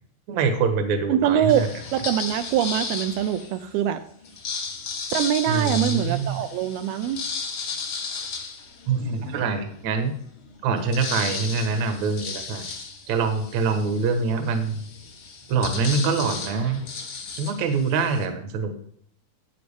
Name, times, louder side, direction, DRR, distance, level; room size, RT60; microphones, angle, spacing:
voice 1, 0.3-1.7 5.5-6.4 8.9-10.1 10.6-12.6 13.1-14.8 15.5-16.8 17.4-18.7, right 4 dB, 60° right, 6 dB, 2.1 m, -24 dB
voice 2, 1.1-4.0 5.1-7.2, right 10 dB, 80° right, 8 dB, 2.5 m, -23 dB
sound 1, 1.5-3.6 4.2-9.4 9.9-10.0 10.2-18.3, left 4 dB, 65° left, 1.3 m, -34 dB
11.5 x 9.1 x 3.5 m, 0.65 s
omnidirectional pair, 4.5 m